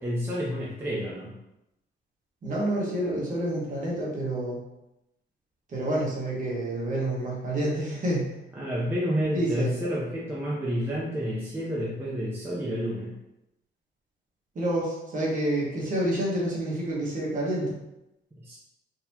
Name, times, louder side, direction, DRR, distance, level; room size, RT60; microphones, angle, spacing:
voice 1, 0.0-1.3 8.6-13.2 18.4-18.6, equal, 10° right, -6 dB, 0.5 m, -30 dB
voice 2, 2.4-4.6 5.7-8.2 9.3-9.7 14.5-17.7, right 1 dB, 45° right, -4 dB, 1.2 m, -28 dB
4.0 x 2.8 x 2.7 m, 0.89 s
cardioid pair, 160°, 19 cm